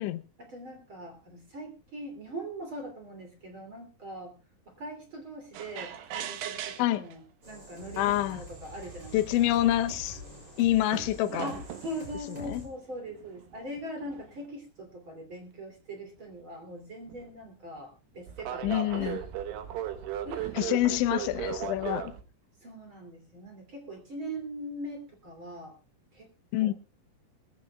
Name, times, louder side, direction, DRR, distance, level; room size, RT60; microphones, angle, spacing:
voice 1, 0.4-4.3 4.7-9.6 11.4-19.2 20.2-20.6 22.6-25.7 26.1-26.3 26.6-26.7, right 1 dB, 30° right, 2.9 m, -41 dB
sound 1, 5.5-7.1 8.1-8.2 8.9-9.0 9.3-10.2 10.9-12.0 12.9-14.5 17.1-17.3 18.3-22.2, right 10 dB, 70° right, 3.1 m, -37 dB
sound 2, 7.4-12.7, left 1 dB, 15° right, 6.3 m, -46 dB
voice 2, 8.0-8.4 9.1-10.2 10.6-11.5 12.4-12.6 18.6-19.2 20.5-22.1 26.5-26.7, left 14 dB, 85° left, 3.2 m, -26 dB
21.0 x 15.0 x 2.3 m
omnidirectional pair, 5.2 m